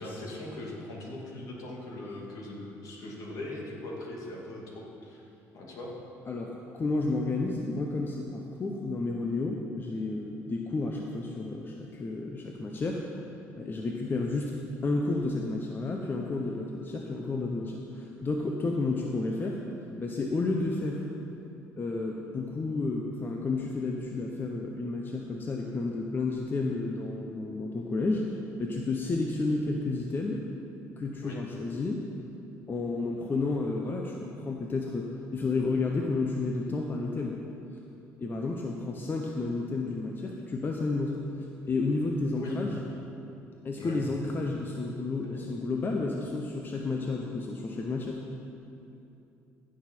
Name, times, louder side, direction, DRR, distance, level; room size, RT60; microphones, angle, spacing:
voice 1, 0.0-4.6 5.0-5.2 5.5-5.9 31.2-31.4 42.3-42.6 43.8-44.0 45.2-45.4, left 2 dB, 65° left, -3 dB, 2.3 m, -40 dB
voice 2, 6.3-13.0 13.6-14.6 14.8-19.6 20.0-21.1 21.8-28.3 28.6-30.4 31.0-32.0 32.7-37.4 38.2-41.2 41.7-42.8 43.6-48.2, left 3 dB, 35° left, 1 dB, 0.8 m, -31 dB
15.0 x 6.3 x 4.5 m, 2.8 s
supercardioid pair, 80°, 6 cm